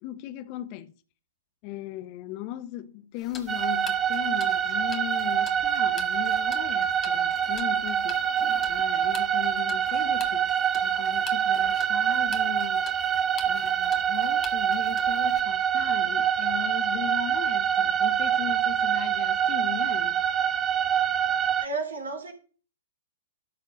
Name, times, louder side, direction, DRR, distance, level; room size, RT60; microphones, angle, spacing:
voice 1, 0.0-0.9 1.6-8.2 8.7-10.5 10.8-12.9 13.5-20.2, left 13 dB, 40° left, 0.9 m, -38 dB
Tick-tock, 3.2-15.4, left 7 dB, 20° left, 1.8 m, -46 dB
sound 1, 3.5-21.7, right 9 dB, 20° right, 0.7 m, -25 dB
voice 2, 21.6-22.3, right 3 dB, 80° right, 3.8 m, -32 dB
12.5 x 4.4 x 8.2 m
figure-of-eight pair, 115°, 0 cm